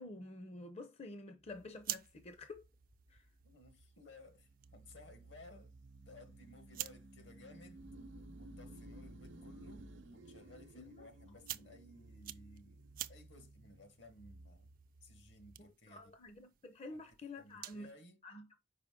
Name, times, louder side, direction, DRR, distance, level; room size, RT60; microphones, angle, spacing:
voice 1, 0.0-2.6 3.1-3.3 10.7-11.0 15.6-17.9 18.2-18.6, left 2 dB, 35° left, 0.5 m, -49 dB
sound 1, 1.5-17.9, right 13 dB, 50° right, 0.4 m, -52 dB
sound 2, 1.5-15.6, right 1 dB, 70° right, 0.7 m, -56 dB
voice 2, 3.4-5.7 6.1-7.8 8.4-14.7 15.0-16.1 16.9-17.0 17.4-18.2, left 2 dB, 65° left, 1.2 m, -58 dB
5.2 x 4.9 x 3.6 m
head